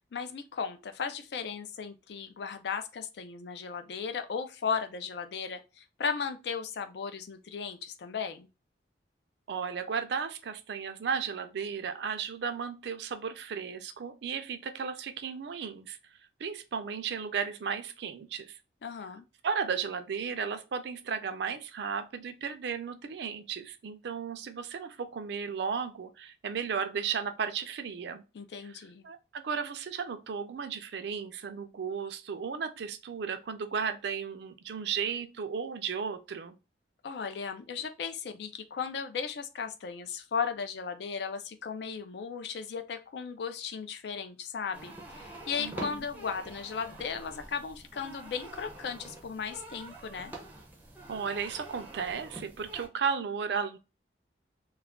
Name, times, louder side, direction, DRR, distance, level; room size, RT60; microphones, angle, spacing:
voice 1, 0.1-8.5 18.8-19.2 28.3-29.1 37.0-50.3, left 6 dB, 60° left, 0.4 m, -36 dB
voice 2, 9.5-16.0 16.4-18.6 19.4-28.2 28.6-28.8 29.0-36.6 45.6-46.1 51.1-53.8, right 6 dB, 65° right, 0.4 m, -34 dB
sound 1, 44.7-52.9, right 2 dB, 10° right, 0.5 m, -46 dB
2.3 x 2.2 x 3.5 m
head